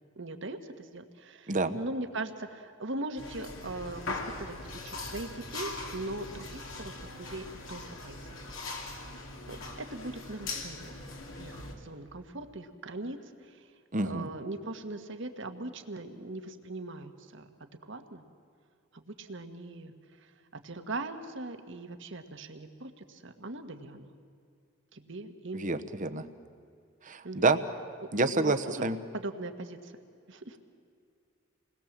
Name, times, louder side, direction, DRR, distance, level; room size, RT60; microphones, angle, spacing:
voice 1, 0.1-4.5 4.8-8.5 9.5-10.9 11.4-13.7 14.0-17.5 17.9-18.2 18.9-20.3 20.6-24.1 24.9-25.6 27.2-27.6 28.0-28.1 28.4-28.8 29.1-29.9 30.3-30.6, right 2 dB, 65° right, 7 dB, 1.6 m, -40 dB
voice 2, 1.5-1.8 13.9-14.3 25.5-26.2 27.1-27.6 28.1-29.0, right 3 dB, 40° right, 9 dB, 1.1 m, -28 dB
sound 1, 3.2-11.7, left 3 dB, 75° left, 2.8 m, -41 dB
28.0 x 20.0 x 7.5 m, 2.3 s
head